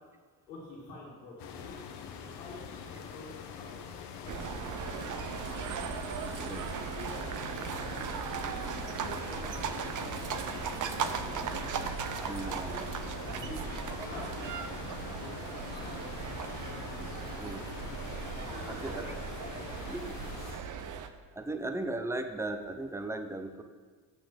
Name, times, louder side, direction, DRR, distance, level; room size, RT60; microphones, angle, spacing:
voice 1, 0.5-1.9 2.3-5.2 5.4-5.8 7.0-9.7 10.6-11.7 12.3-14.5 15.1-16.0 18.0-18.1 18.3-19.8, left 2 dB, 90° left, -6 dB, 1.9 m, -48 dB
sound 1, 1.4-20.6, left 7 dB, 55° left, 1.1 m, -43 dB
sound 2, 4.3-21.1, right 7 dB, 40° right, 0.7 m, -37 dB
voice 2, 6.4-6.8 12.2-12.8 17.4-17.7 18.7-19.0 19.9-20.0 20.4-20.7 21.3-23.6, right 2 dB, 5° right, 7 dB, 0.8 m, -37 dB
6.3 x 6.1 x 6.5 m, 1.5 s
hypercardioid pair, 75°, 49 cm